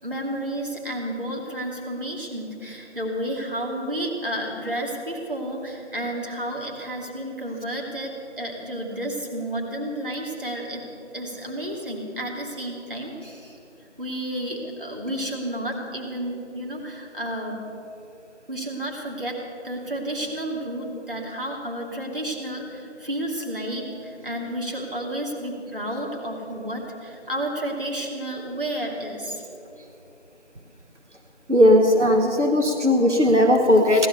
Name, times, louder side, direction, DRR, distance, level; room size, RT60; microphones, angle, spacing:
voice 1, 0.0-10.9 11.1-13.6 14.0-17.6 18.5-29.5, right 1 dB, 50° right, -1 dB, 3.0 m, -31 dB
voice 2, 31.5-34.1, left 1 dB, 85° right, 2 dB, 1.8 m, -17 dB
17.0 x 12.0 x 6.9 m, 2.8 s
figure-of-eight pair, 180°, 35 cm